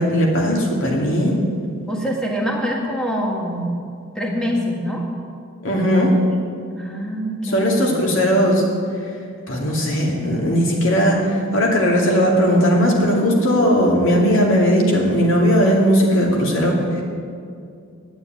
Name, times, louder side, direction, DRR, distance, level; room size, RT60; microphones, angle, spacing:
voice 1, 0.0-1.4 5.6-6.2 7.4-8.6 9.5-17.0, equal, 65° left, -1 dB, 2.5 m, -17 dB
voice 2, 1.9-3.7 4.1-5.0 6.7-8.3, equal, 5° left, -2 dB, 1.8 m, -25 dB
9.5 x 8.8 x 9.0 m, 2.3 s
head